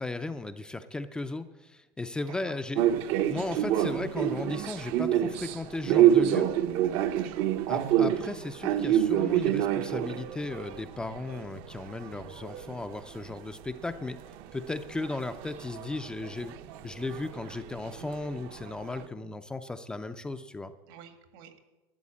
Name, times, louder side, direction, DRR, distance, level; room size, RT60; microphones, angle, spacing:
voice 1, 0.0-2.9 3.3-6.5 7.7-14.2 14.5-16.6 16.8-20.7, left 2 dB, 10° left, 9 dB, 0.4 m, -36 dB
voice 2, 2.2-2.6 7.0-7.5 20.9-21.6, right 9 dB, 80° right, 7 dB, 1.9 m, -50 dB
sound 1, 2.7-13.6 13.9-19.1, right 11 dB, 55° right, 0.7 m, -28 dB
12.5 x 7.8 x 8.5 m, 1.1 s
cardioid pair, 160°, 11 cm